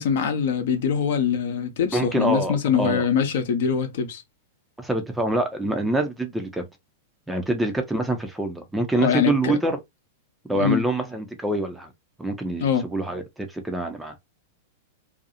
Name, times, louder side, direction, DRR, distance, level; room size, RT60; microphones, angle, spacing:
voice 1, 0.0-4.2 9.0-9.5 10.5-10.9 12.6-12.8, left 7 dB, 55° left, 0.7 m, -23 dB
voice 2, 1.9-3.0 4.8-6.6 7.3-9.8 10.5-11.9 12.2-14.1, right 2 dB, 5° right, 0.6 m, -25 dB
2.6 x 2.3 x 2.7 m
figure-of-eight pair, 95°, 0 cm